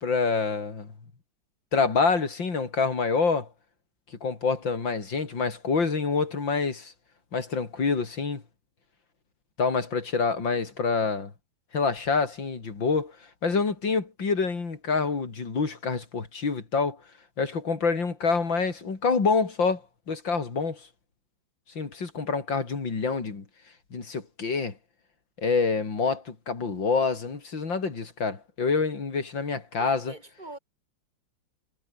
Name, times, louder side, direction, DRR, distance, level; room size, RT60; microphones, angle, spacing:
voice 1, 0.0-0.9 1.7-3.5 4.2-6.9 7.3-8.4 9.6-11.3 11.7-13.2 13.4-17.0 17.4-19.8 20.1-20.9 21.8-23.4 23.9-24.7 25.4-30.1, left 4 dB, 75° left, 4.2 m, -27 dB
voice 2, 29.8-30.6, right 2 dB, 20° right, 4.1 m, -41 dB
omnidirectional pair, 2.1 m